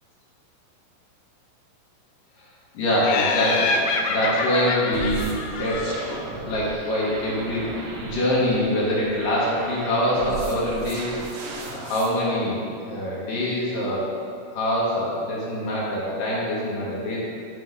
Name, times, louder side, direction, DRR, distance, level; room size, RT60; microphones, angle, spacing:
voice 1, 2.7-3.8 4.1-14.1 14.5-17.2, left 1 dB, 65° left, -6 dB, 2.2 m, -25 dB
Laughter, 3.0-6.4, left 4 dB, 85° left, 3.4 m, -27 dB
sound 1, 4.9-12.1, right 4 dB, 85° right, 2.3 m, -36 dB
6.6 x 5.7 x 6.4 m, 2.6 s
omnidirectional pair, 5.9 m